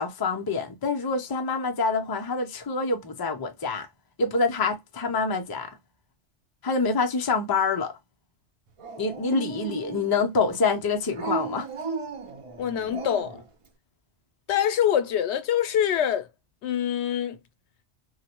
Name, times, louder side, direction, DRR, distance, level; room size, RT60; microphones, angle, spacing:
voice 1, 0.0-3.9 4.2-5.8 6.6-7.9 9.0-11.7, left 4 dB, 35° left, 0.3 m, -26 dB
Dog, 8.8-10.3 11.1-13.5, right 5 dB, 45° right, 0.4 m, -35 dB
voice 2, 12.6-13.4 14.5-16.3 16.6-17.4, left 9 dB, 75° left, 0.9 m, -25 dB
3.6 x 2.1 x 2.9 m
omnidirectional pair, 1.2 m